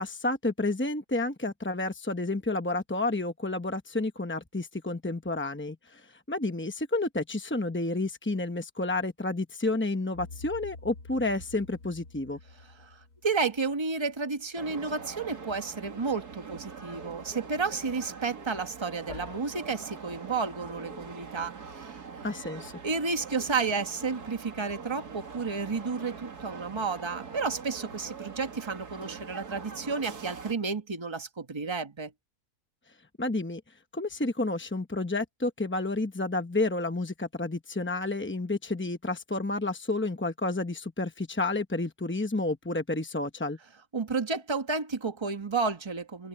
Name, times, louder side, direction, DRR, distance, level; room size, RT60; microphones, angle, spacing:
voice 1, 0.0-12.4 22.2-22.7 33.2-33.6 33.9-43.6, left 2 dB, 15° left, 0.5 m, -30 dB
sound 1, 10.1-14.3 19.1-19.4, left 3 dB, 85° left, 3.1 m, -47 dB
voice 2, 13.2-22.0 22.8-32.1 43.9-46.3, right 4 dB, 20° right, 1.3 m, -31 dB
sound 2, 14.6-30.5, right 5 dB, 90° right, 2.6 m, -43 dB
open air
omnidirectional pair, 1.6 m